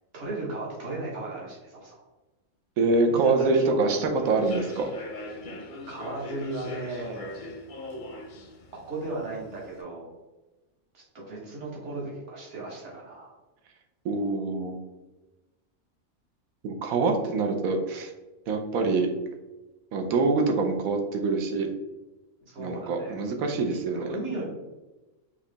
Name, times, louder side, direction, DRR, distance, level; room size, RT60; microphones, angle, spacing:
voice 1, 0.1-2.0 3.1-4.6 5.9-7.3 8.7-10.1 10.9-13.3 22.4-23.2 23.9-24.4, right 2 dB, 60° right, -3 dB, 1.6 m, -36 dB
voice 2, 2.8-4.9 14.0-14.8 16.6-18.1 18.5-19.1 19.9-21.7 22.6-24.1, right 3 dB, 90° right, 4 dB, 1.1 m, -25 dB
Human voice / Subway metro underground, 4.2-9.8, left 2 dB, 55° left, 0.6 m, -40 dB
4.7 x 3.0 x 3.4 m, 1.1 s
omnidirectional pair, 1.4 m